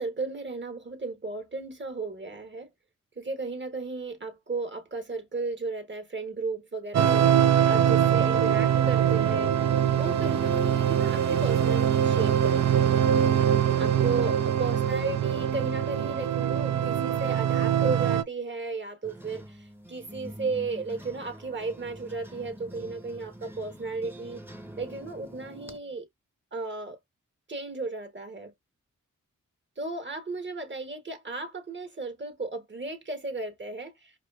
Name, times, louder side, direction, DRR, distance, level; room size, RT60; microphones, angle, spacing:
voice 1, 0.0-2.7 3.2-7.3 7.7-9.6 10.0-13.0 13.8-24.4 24.8-26.1 26.5-27.0 27.5-28.5 29.8-34.1, right 3 dB, 35° right, 1.3 m, -34 dB
sound 1, 6.9-18.2, right 9 dB, 60° right, 0.5 m, -23 dB
sound 2, 19.0-25.8, equal, 5° right, 0.8 m, -45 dB
4.8 x 2.4 x 2.4 m
cardioid pair, 50°, 31 cm